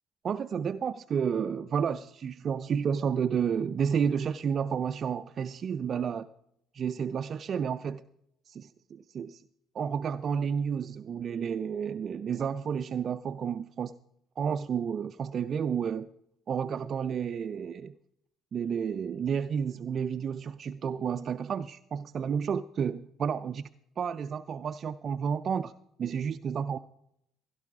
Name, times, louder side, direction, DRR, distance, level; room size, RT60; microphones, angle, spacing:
voice 1, 0.2-6.3 6.7-8.0 8.5-9.4 9.7-13.9 14.4-16.1 16.5-17.9 18.5-23.6 24.0-25.7 26.0-26.8, right 7 dB, 50° right, 11 dB, 0.4 m, -31 dB
16.5 x 11.5 x 3.5 m, 0.74 s
hypercardioid pair, 55°, 0 cm